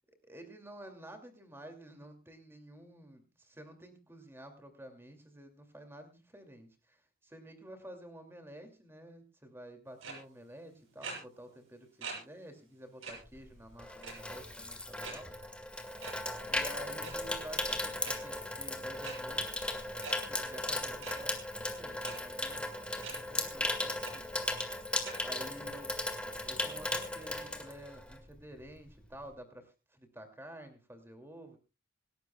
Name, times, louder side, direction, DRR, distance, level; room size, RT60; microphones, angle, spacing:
voice 1, 0.2-15.3 16.5-19.7 20.2-22.7 23.1-24.4 24.9-25.0 25.2-26.0 26.4-31.6, right 1 dB, 10° right, 6 dB, 2.5 m, -51 dB
clock tick, 10.0-10.1 11.0-11.1 12.0-12.1 12.5-12.6 13.0-13.1 14.0-14.4 15.0-15.1 16.0-16.1 16.9-17.1 18.0-18.1 19.0-19.1 20.0-20.1 21.0-21.1 22.0-22.1 23.0-23.1 23.6-23.7 24.0-24.1 25.0-25.1, right 5 dB, 75° right, 6.6 m, -42 dB
Water tap faucet / Sink (filling or washing), 13.3-28.3 28.6-28.9, left 1 dB, 5° left, 1.9 m, -37 dB
26.0 x 12.0 x 2.3 m, 0.30 s
head